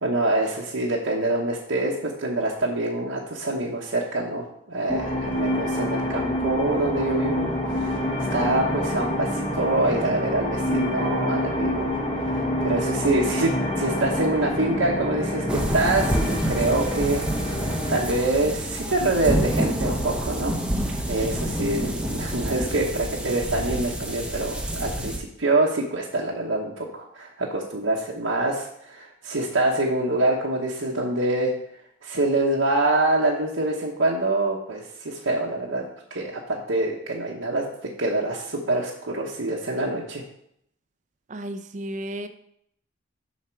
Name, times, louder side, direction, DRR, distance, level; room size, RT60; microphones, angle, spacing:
voice 1, 0.0-7.5 7.8-8.0 8.3-12.0 12.3-17.2 17.7-20.6 20.8-31.5 32.0-35.8 36.1-37.6 38.0-40.2, right 2 dB, 80° right, -3 dB, 1.1 m, -25 dB
sound 1, 4.9-18.2, left 1 dB, 25° left, 1.1 m, -27 dB
sound 2, 15.5-25.2, right 1 dB, 5° right, 0.7 m, -28 dB
voice 2, 16.6-17.2 21.1-21.3 41.3-42.3, right 1 dB, 35° right, 9 dB, 0.5 m, -34 dB
7.3 x 5.7 x 4.5 m, 0.71 s
head